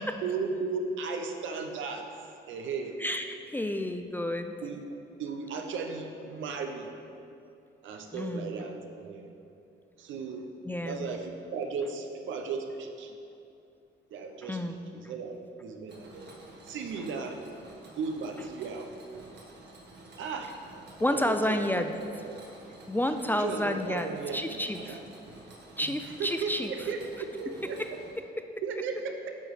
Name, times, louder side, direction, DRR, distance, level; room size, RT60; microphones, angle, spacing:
voice 1, 0.0-2.2 2.5-3.0 4.6-4.9 5.2-6.9 7.8-9.3 10.0-10.5 10.9-13.2 14.1-14.6 14.9-16.4 16.6-17.4 17.9-18.9 20.2-20.6 21.1-21.6 22.2-22.4 23.3-25.0 25.8-25.9 26.2-27.8 28.6-29.4, right 4 dB, 80° right, 4 dB, 0.7 m, -36 dB
voice 2, 3.0-4.5 8.1-8.7 10.7-11.1 14.4-14.8 21.0-21.9 22.9-25.0 25.8-26.9, left 1 dB, 10° left, 7 dB, 0.3 m, -30 dB
Mechanisms, 15.9-28.1, right 2 dB, 60° right, 1.5 m, -51 dB
8.8 x 3.1 x 6.3 m, 2.6 s
cardioid pair, 90°, 20 cm